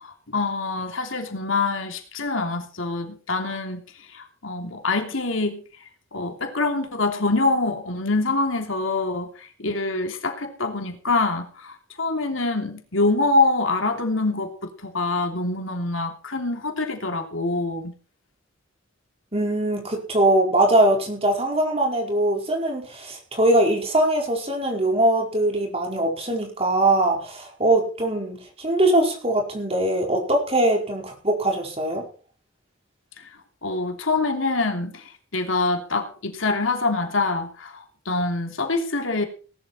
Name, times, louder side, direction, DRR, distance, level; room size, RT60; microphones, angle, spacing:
voice 1, 0.0-3.8 4.1-5.6 6.1-14.5 14.8-17.9 33.6-39.3, left 3 dB, 75° left, 4 dB, 3.1 m, -25 dB
voice 2, 19.3-32.0, right 1 dB, 30° right, 1 dB, 4.9 m, -22 dB
18.5 x 12.0 x 4.4 m, 0.38 s
head